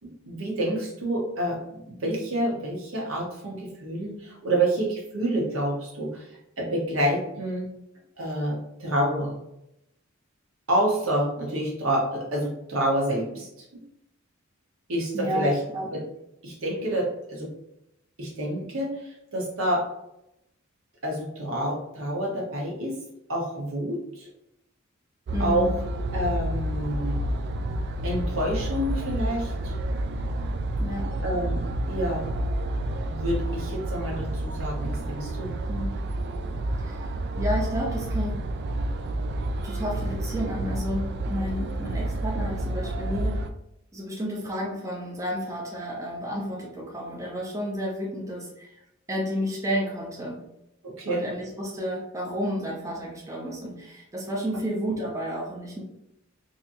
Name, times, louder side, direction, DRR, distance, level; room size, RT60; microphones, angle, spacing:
voice 1, 0.0-7.7 8.2-9.4 10.7-13.6 14.9-15.6 15.9-16.0 16.4-17.5 18.2-19.9 21.0-23.0 23.3-24.3 25.4-25.7 26.1-27.2 28.0-29.7 31.2-32.3 33.0-35.6 50.8-51.3, right 1 dB, 75° right, -3 dB, 1.3 m, -28 dB
voice 2, 15.1-15.9 25.3-25.7 30.8-31.1 35.7-35.9 36.8-37.0 37.4-38.3 39.6-43.3 43.9-48.8 49.1-50.4 51.0-55.8, equal, 15° right, -3 dB, 0.7 m, -31 dB
sound 1, 25.3-43.5, right 1 dB, 55° right, 0.3 m, -29 dB
4.0 x 2.8 x 2.7 m, 0.82 s
head